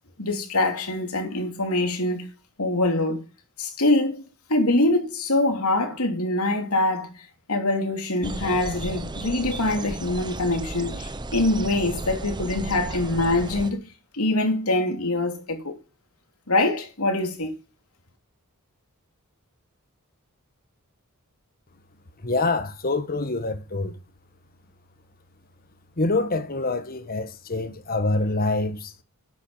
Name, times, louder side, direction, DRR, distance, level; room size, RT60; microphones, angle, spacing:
voice 1, 0.2-2.3 2.6-3.2 3.6-4.2 4.5-7.1 7.5-13.8 14.1-15.8 16.5-17.5, left 2 dB, 85° left, 3.2 m, -24 dB
sound 1, 8.2-13.7, right 2 dB, 20° right, 0.8 m, -34 dB
voice 2, 22.2-24.0 26.0-29.0, left 2 dB, 45° left, 1.4 m, -26 dB
10.5 x 8.1 x 5.7 m
head